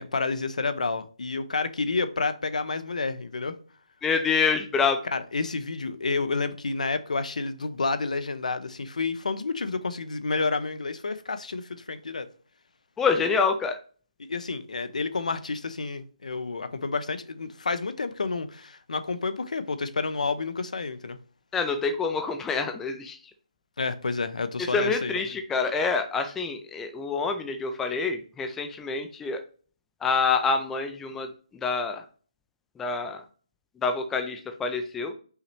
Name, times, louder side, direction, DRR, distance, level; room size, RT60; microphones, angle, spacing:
voice 1, 0.0-3.6 5.1-12.3 14.3-21.2 23.8-25.2, left 4 dB, 75° left, 0.6 m, -30 dB
voice 2, 4.0-5.0 13.0-13.8 21.5-23.2 24.7-29.4 30.0-31.3 31.6-32.0 32.8-33.2 33.8-35.1, left 5 dB, 5° left, 0.3 m, -26 dB
5.6 x 2.9 x 3.1 m
figure-of-eight pair, 155°, 4 cm